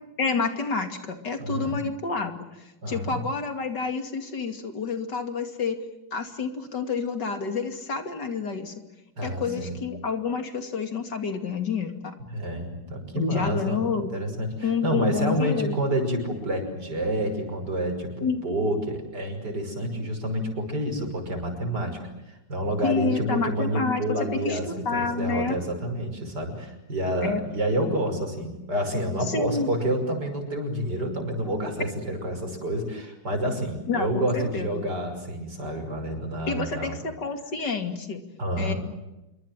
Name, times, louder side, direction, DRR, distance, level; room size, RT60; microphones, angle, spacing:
voice 1, 0.2-2.3 2.9-5.8 6.1-8.7 9.2-12.1 13.1-14.1 14.6-15.7 18.2-18.4 22.8-24.0 24.3-25.6 27.2-27.4 29.3-29.7 33.9-34.8 36.5-38.2 38.6-38.7, left 5 dB, 70° left, 7 dB, 3.2 m, -29 dB
voice 2, 1.4-1.8 2.8-3.2 9.2-9.8 12.3-18.1 18.4-37.0 38.4-38.8, equal, 65° right, 5 dB, 6.4 m, -28 dB
27.0 x 24.5 x 7.5 m, 1.0 s
omnidirectional pair, 2.0 m